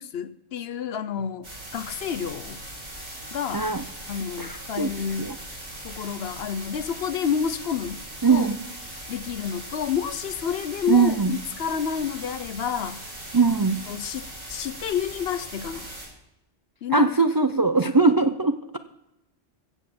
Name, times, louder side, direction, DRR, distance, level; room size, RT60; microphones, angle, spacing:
voice 1, 0.1-1.5 1.7-2.6 3.3-3.6 4.1-5.3 5.8-8.0 8.3-8.5 9.1-13.0 13.9-15.9 16.8-17.1, left 8 dB, 60° left, 0.9 m, -29 dB
sound 1, 1.4-16.1, right 1 dB, 85° right, 5.5 m, -39 dB
voice 2, 3.5-3.8 4.4-4.9 5.2-5.4 8.2-8.6 10.9-11.3 13.3-13.8 16.9-18.8, right 4 dB, 35° right, 0.3 m, -21 dB
16.0 x 6.0 x 7.7 m
omnidirectional pair, 1.2 m